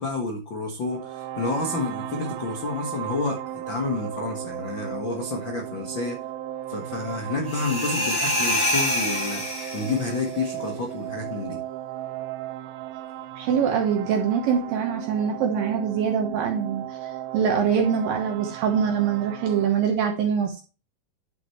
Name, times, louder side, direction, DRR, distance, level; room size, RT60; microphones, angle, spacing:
voice 1, 0.0-6.2 6.7-11.6, left 3 dB, 75° left, 1 dB, 1.0 m, -29 dB
sound 1, 0.9-19.7, right 12 dB, 90° right, 2.8 m, -36 dB
sound 2, 7.5-10.2, left 1 dB, 25° left, 3.0 m, -26 dB
voice 2, 13.4-16.8 17.3-20.6, right 7 dB, 65° right, 2 dB, 2.6 m, -23 dB
10.5 x 7.8 x 3.1 m, 0.33 s
omnidirectional pair, 4.9 m